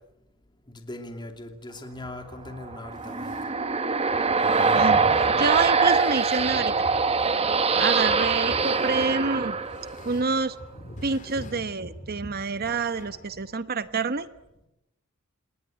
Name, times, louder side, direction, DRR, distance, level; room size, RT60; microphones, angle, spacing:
voice 1, 0.7-3.4 7.1-7.2 7.8-8.2, left 1 dB, 20° left, 5 dB, 2.8 m, -40 dB
sound 1, 1.9-13.6, left 1 dB, 40° left, 3.2 m, -45 dB
sound 2, 2.7-10.2, right 4 dB, 30° right, 1.3 m, -23 dB
voice 2, 4.7-6.7 7.7-9.6 10.0-10.5 11.0-14.3, right 4 dB, 45° right, 13 dB, 1.0 m, -27 dB
28.5 x 19.5 x 8.9 m, 0.90 s
head